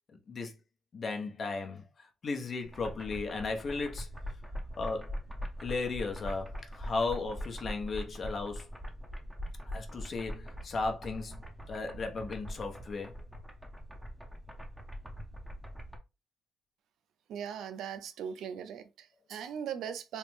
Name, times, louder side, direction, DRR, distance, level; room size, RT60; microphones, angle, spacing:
voice 1, 0.9-4.1 4.8-5.2 5.6-8.7 9.7-11.4 11.7-13.1, left 3 dB, 45° left, 0.7 m, -35 dB
sound 1, 2.6-16.0, equal, 5° right, 0.6 m, -42 dB
voice 2, 17.3-20.2, right 8 dB, 80° right, 0.4 m, -39 dB
3.2 x 2.0 x 3.1 m
cardioid pair, 90°, 0 cm